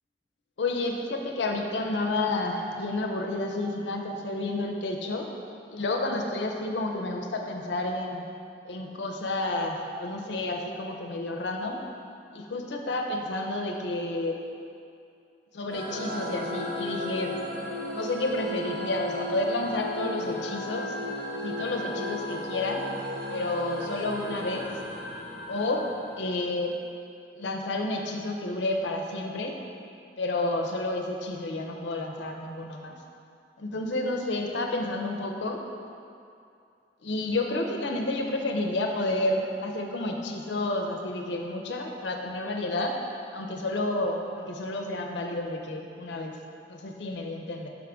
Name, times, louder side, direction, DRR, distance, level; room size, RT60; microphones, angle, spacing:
voice 1, 0.6-5.3 5.7-8.2 8.6-11.8 12.3-14.4 15.5-17.4 17.9-20.9 21.3-22.8 23.3-24.7 25.5-25.9 26.2-26.7 27.3-29.6 30.2-33.0 33.6-35.6 37.0-43.0 43.3-46.4 46.7-47.7, left 2 dB, 85° left, 3 dB, 0.6 m, -30 dB
sound 1, 15.7-26.6, left 1 dB, 80° right, 0.9 m, -35 dB
6.2 x 3.5 x 5.0 m, 2.5 s
head